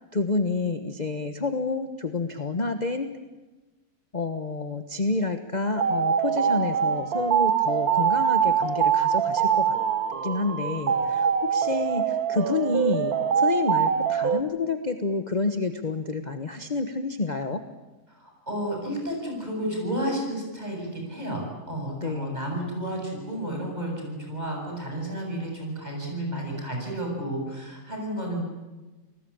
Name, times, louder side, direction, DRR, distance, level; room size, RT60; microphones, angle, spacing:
voice 1, 0.1-3.1 4.1-9.7 10.2-17.6 22.0-22.4, left 3 dB, 30° left, 7 dB, 1.3 m, -29 dB
sound 1, 5.8-14.4, right 7 dB, 75° right, 1.7 m, -24 dB
voice 2, 18.1-28.4, right 1 dB, 25° right, 0 dB, 8.1 m, -32 dB
28.5 x 20.0 x 8.7 m, 1.2 s
omnidirectional pair, 1.6 m